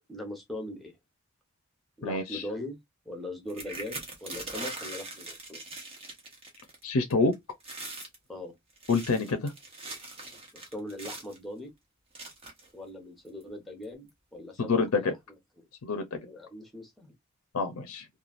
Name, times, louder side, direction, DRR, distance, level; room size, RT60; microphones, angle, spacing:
voice 1, 0.1-0.9 2.0-2.8 3.0-5.6 8.3-8.5 10.5-11.7 12.7-15.2 15.6-15.7 16.2-17.1, left 1 dB, ahead, 0.9 m, -40 dB
voice 2, 2.0-2.4 6.8-7.3 8.9-9.5 14.6-15.1 15.8-16.0 17.5-18.1, left 4 dB, 75° left, 0.6 m, -27 dB
sound 1, 3.5-6.8 7.1-7.3 7.6-8.2 8.7-11.4 12.1-12.7 13.4-13.5 13.8-14.1, right 2 dB, 25° right, 0.9 m, -41 dB
3.1 x 2.3 x 2.4 m
head